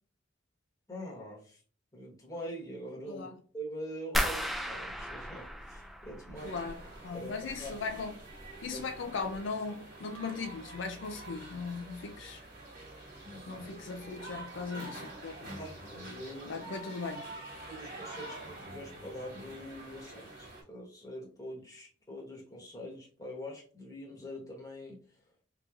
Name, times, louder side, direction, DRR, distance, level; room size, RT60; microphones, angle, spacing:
voice 1, 0.9-1.6 1.9-6.5 7.1-7.3 7.6-7.8 8.7-9.2 13.2-13.7 15.6-16.7 17.7-25.2, equal, 20° left, 1.2 m, -44 dB
sound 1, 4.1-7.0 7.3-8.0 8.4-8.8 9.2-9.3, equal, ahead, 0.5 m, -35 dB
sound 2, 6.3-20.6, right 2 dB, 45° right, 1.6 m, -47 dB
voice 2, 6.4-8.1 8.6-12.4 13.5-15.5 16.5-17.3, left 4 dB, 70° left, 0.4 m, -38 dB
3.9 x 3.0 x 2.4 m
head